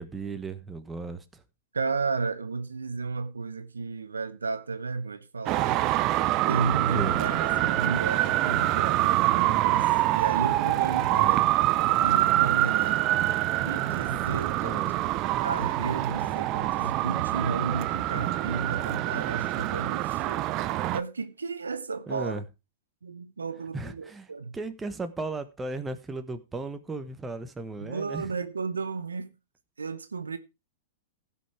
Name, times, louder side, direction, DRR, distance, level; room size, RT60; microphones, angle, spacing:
voice 1, 0.0-1.4 6.7-7.1 11.1-11.5 14.6-14.9 22.1-22.4 23.7-28.3, right 3 dB, 15° right, 1.3 m, -36 dB
voice 2, 1.7-5.8 6.5-13.0 13.6-14.9 15.4-20.5 20.8-22.4 23.0-24.6 27.8-29.3 29.8-30.4, right 4 dB, 90° right, 1.0 m, -33 dB
Traffic noise roadway noise, 5.5-21.0, right 15 dB, 40° right, 0.6 m, -25 dB
16.0 x 5.7 x 4.6 m
hypercardioid pair, 110°, 0 cm